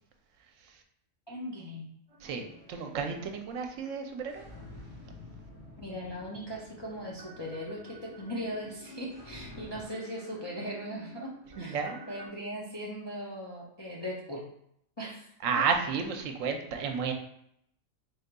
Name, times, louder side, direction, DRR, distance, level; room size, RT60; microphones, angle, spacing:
voice 1, 1.3-1.9 5.8-11.8 12.1-14.4 15.0-15.3, equal, 45° left, -5 dB, 0.3 m, -39 dB
sound 1, 2.1-5.7 6.5-12.3, right 1 dB, 35° right, 0.6 m, -54 dB
voice 2, 2.2-4.4 11.6-12.0 15.4-17.1, right 5 dB, 80° right, 4 dB, 0.9 m, -32 dB
sound 2, 4.3-9.8, left 2 dB, 60° left, 1.0 m, -49 dB
3.8 x 3.6 x 2.2 m, 0.74 s
omnidirectional pair, 1.3 m